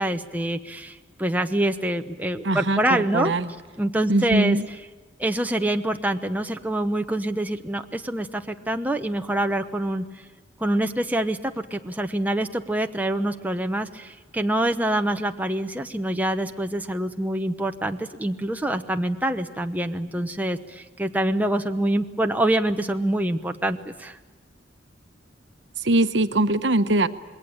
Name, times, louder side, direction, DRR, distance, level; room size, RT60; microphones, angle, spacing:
voice 1, 0.0-3.3 3.8-4.6 5.2-10.1 10.6-24.2, right 1 dB, 10° right, 5 dB, 0.9 m, -25 dB
voice 2, 2.4-3.5 4.1-4.6 25.8-27.1, right 2 dB, 65° right, 11 dB, 1.1 m, -22 dB
27.0 x 21.5 x 8.6 m, 1.3 s
head